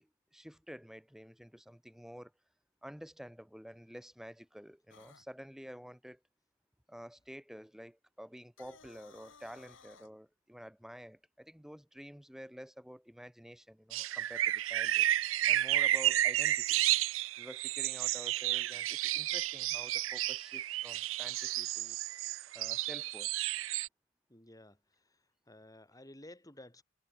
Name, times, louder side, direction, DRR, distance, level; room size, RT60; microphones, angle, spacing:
voice 1, 0.0-2.3 2.8-6.2 6.9-15.1 15.4-16.8 17.4-22.0 22.5-23.3, equal, ahead, 2.6 m, -50 dB
sound 1, 4.9-5.3 8.4-10.1, left 5 dB, 80° left, 3.8 m, -58 dB
sound 2, 13.9-23.9, right 14 dB, 85° right, 0.4 m, -32 dB
voice 2, 24.3-26.8, left 1 dB, 20° left, 3.9 m, -54 dB
head